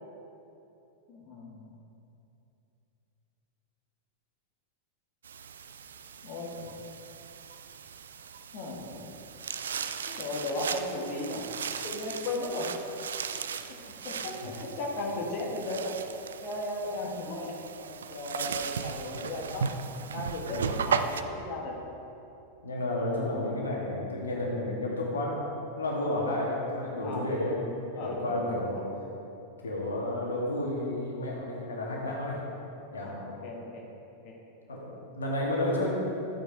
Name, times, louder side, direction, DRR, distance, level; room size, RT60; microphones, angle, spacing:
voice 1, 1.1-1.8 6.2-6.8 8.5-9.1 10.1-11.5 11.8-12.7 13.3-15.9 16.4-19.7 20.1-21.7 27.0-27.3 28.0-28.8 33.0-33.8 34.2-34.3, left 2 dB, 45° left, -2 dB, 1.8 m, -36 dB
sound 1, 5.2-21.2, right 6 dB, 65° right, 0.5 m, -37 dB
voice 2, 22.6-25.5 25.8-28.8 29.6-32.4 32.9-33.1 34.7-34.8 35.2-35.9, left 1 dB, 70° left, -3 dB, 2.1 m, -31 dB
13.0 x 8.9 x 4.7 m, 2.8 s
figure-of-eight pair, 90°, 0 cm